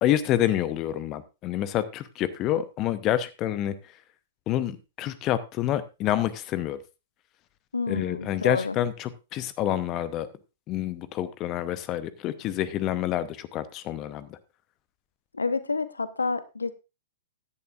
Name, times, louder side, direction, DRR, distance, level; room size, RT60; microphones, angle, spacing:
voice 1, 0.0-3.7 4.5-6.8 7.9-10.3 10.7-14.4, left 12 dB, 30° left, 0.8 m, -28 dB
voice 2, 7.7-8.8 15.3-16.7, left 4 dB, 75° left, 0.8 m, -29 dB
15.0 x 10.5 x 2.5 m
figure-of-eight pair, 105°, 0 cm